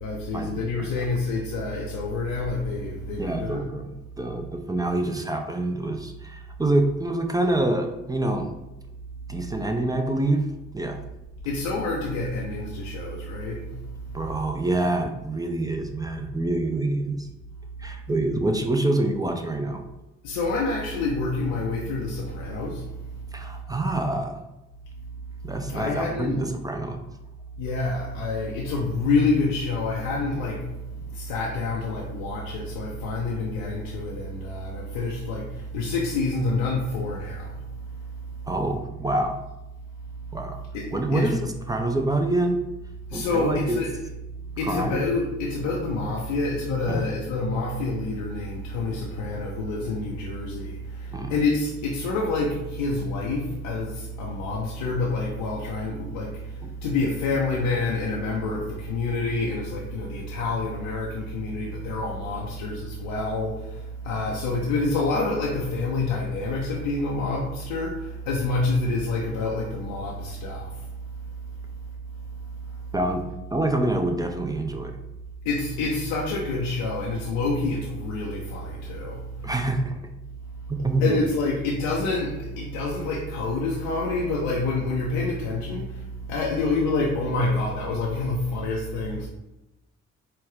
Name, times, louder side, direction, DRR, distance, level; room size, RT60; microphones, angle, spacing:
voice 1, 0.0-3.6 11.4-13.8 20.2-22.9 25.7-26.4 27.6-30.7 31.1-37.9 38.2-38.3 40.7-40.9 41.1-41.3 43.1-43.9 44.5-70.9 72.7-72.8 75.4-79.5 81.0-89.3, left 3 dB, 85° left, -3 dB, 0.6 m, -27 dB
voice 2, 3.2-3.9 4.2-8.5 9.3-10.5 10.7-11.0 14.1-17.3 17.8-19.8 23.3-24.4 25.4-27.0 38.5-39.4 40.3-40.6 40.9-42.6 43.1-43.8 44.6-45.0 46.9-47.1 51.1-51.3 56.6-56.7 72.9-73.2 73.5-75.0 79.4-79.9 80.7-81.2, right 2 dB, 10° right, 3 dB, 0.6 m, -26 dB
4.4 x 2.2 x 3.6 m, 0.97 s
hypercardioid pair, 50°, 31 cm